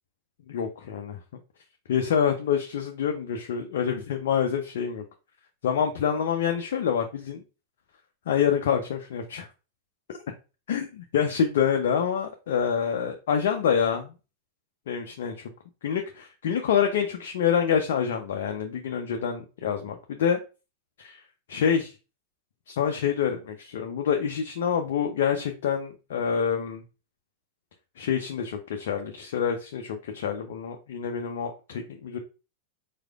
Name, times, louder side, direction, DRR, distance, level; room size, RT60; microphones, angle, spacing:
voice 1, 0.5-1.2 1.9-5.0 5.6-7.4 8.3-9.5 10.1-10.2 10.7-10.9 11.1-14.1 14.9-15.3 15.8-20.4 21.0-21.2 21.5-21.9 22.7-26.8 28.0-32.2, left 7 dB, 55° left, 4 dB, 0.6 m, -26 dB
4.8 x 4.1 x 2.3 m, 0.31 s
figure-of-eight pair, 90°, 0 cm